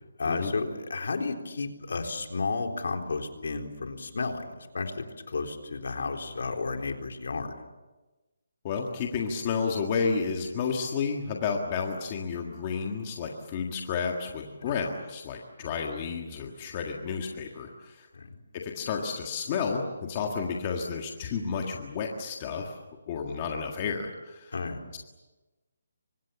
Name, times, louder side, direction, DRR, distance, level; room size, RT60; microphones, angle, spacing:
voice 1, 0.2-7.5 14.7-14.8 18.1-18.4 24.5-24.8, left 4 dB, 55° left, 4 dB, 3.8 m, -32 dB
voice 2, 8.6-18.1 18.5-22.8 23.1-24.5, left 5 dB, 20° left, 1 dB, 1.7 m, -31 dB
29.5 x 25.0 x 7.1 m, 1.1 s
hypercardioid pair, 180°, 0 cm